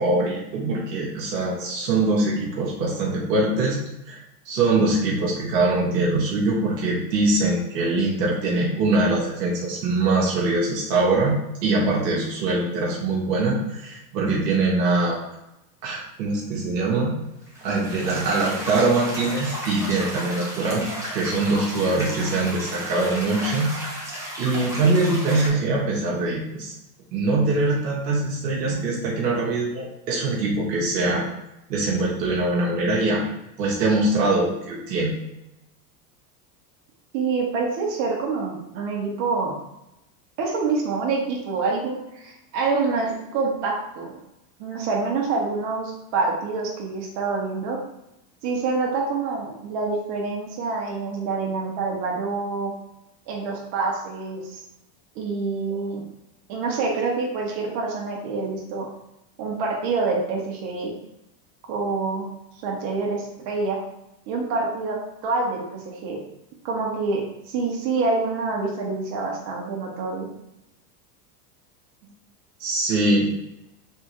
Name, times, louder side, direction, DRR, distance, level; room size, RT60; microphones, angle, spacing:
voice 1, 0.0-3.8 4.1-4.2 4.4-11.4 11.6-15.2 15.8-17.1 17.6-20.9 21.1-23.7 24.4-26.7 27.1-31.2 31.7-33.2 33.6-35.1 72.6-73.3, right 2 dB, 85° right, -3 dB, 1.3 m, -23 dB
sound 1, 17.4-25.5, equal, 5° right, 1.4 m, -33 dB
voice 2, 37.1-39.6 40.4-44.2 44.6-47.8 48.4-52.7 53.3-54.6 55.1-56.0 56.5-58.9 59.4-61.0 61.7-62.2 62.6-63.8 64.3-66.2 66.6-67.2 67.5-70.3, right 4 dB, 55° right, -1 dB, 1.4 m, -26 dB
3.6 x 3.5 x 3.0 m, 0.87 s
hypercardioid pair, 105°, 48 cm